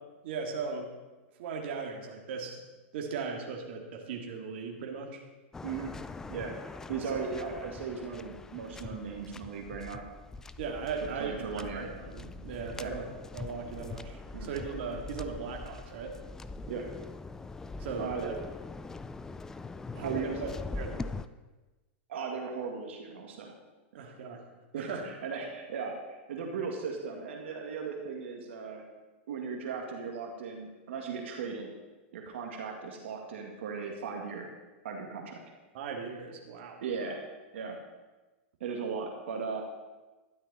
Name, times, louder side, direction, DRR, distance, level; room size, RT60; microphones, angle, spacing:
voice 1, 0.2-0.9 1.4-2.6 2.9-5.2 6.9-7.2 10.6-13.1 13.3-16.2 17.8-18.3 19.9-21.2 24.0-24.5 24.8-25.1 35.7-36.8, right 5 dB, 60° right, 1 dB, 2.1 m, -38 dB
Waves surf, 5.5-21.3, left 3 dB, 10° left, 0.3 m, -43 dB
voice 2, 5.6-6.0 6.3-6.5 6.9-10.0 11.0-11.9 12.8-12.9 14.3-14.5 16.7-16.9 18.0-18.3 20.0-20.5 22.1-23.5 24.0-24.1 24.7-28.9 29.3-31.7 32.1-34.5 34.8-35.4 36.8-37.2 37.5-37.8 38.6-39.6, right 5 dB, 75° right, 2 dB, 2.0 m, -37 dB
12.5 x 10.5 x 4.2 m, 1.2 s
supercardioid pair, 145°, 7 cm